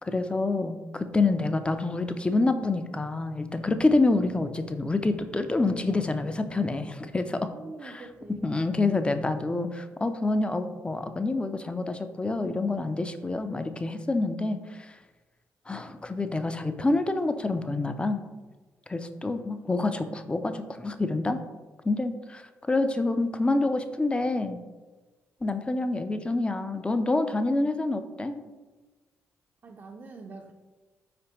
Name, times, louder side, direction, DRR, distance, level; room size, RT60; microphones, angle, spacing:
voice 1, 0.0-7.5 7.8-8.1 8.4-14.9 15.7-18.2 18.9-21.4 21.8-24.6 25.4-28.4, left 2 dB, 20° left, 9 dB, 0.4 m, -27 dB
voice 2, 7.5-8.9 19.5-19.8 27.4-28.5 29.6-30.5, right 3 dB, 45° right, 1 dB, 0.4 m, -47 dB
4.6 x 3.4 x 2.9 m, 1.3 s
supercardioid pair, 60°, 6 cm